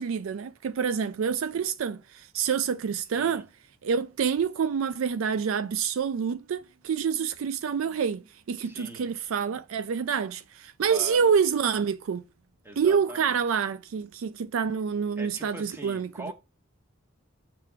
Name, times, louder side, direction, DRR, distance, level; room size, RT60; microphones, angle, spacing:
voice 1, 0.0-3.5 3.8-12.2 12.8-16.3, right 6 dB, 65° right, 0.4 m, -27 dB
voice 2, 3.1-3.4 8.6-9.1 10.8-11.3 12.6-13.6 15.2-16.3, right 1 dB, 10° right, 1.2 m, -42 dB
6.6 x 3.4 x 4.7 m
head